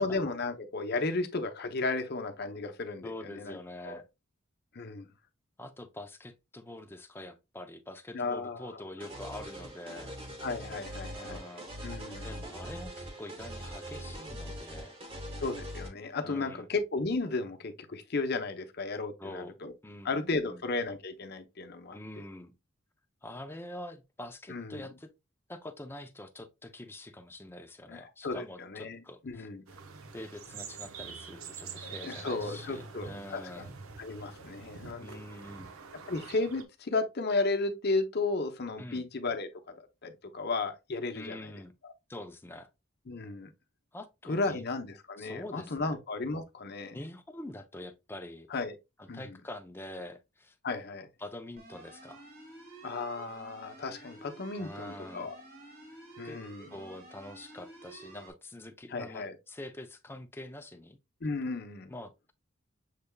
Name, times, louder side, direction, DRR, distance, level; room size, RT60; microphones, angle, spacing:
voice 1, 0.0-3.6 3.8-4.0 4.7-5.1 8.1-8.8 10.4-11.4 11.8-12.3 15.4-19.7 20.0-22.0 24.5-24.9 27.9-29.6 31.8-33.5 34.0-35.2 36.1-39.5 40.0-41.5 41.8-41.9 43.1-43.5 44.3-47.0 48.5-48.7 49.1-49.4 50.6-51.1 52.8-55.3 56.2-56.7 58.9-59.4 61.2-61.9, left 3 dB, 50° left, 0.7 m, -34 dB
voice 2, 3.0-4.0 5.6-10.2 11.1-11.7 12.2-14.9 16.2-16.7 19.2-20.6 21.9-22.5 23.2-25.1 25.5-29.5 30.1-33.7 35.0-35.7 38.8-39.1 41.1-41.7 42.1-42.7 43.9-44.7 45.2-46.0 46.9-48.5 49.0-50.6 51.2-52.2 54.6-55.3 56.2-56.4 56.7-61.0 61.9-62.3, left 1 dB, 10° left, 0.5 m, -45 dB
sound 1, 9.0-15.9, equal, 25° right, 1.1 m, -42 dB
sound 2, 29.7-36.6, right 5 dB, 85° right, 0.7 m, -46 dB
sound 3, 51.6-58.3, right 2 dB, 45° right, 1.5 m, -51 dB
6.5 x 3.4 x 2.2 m
head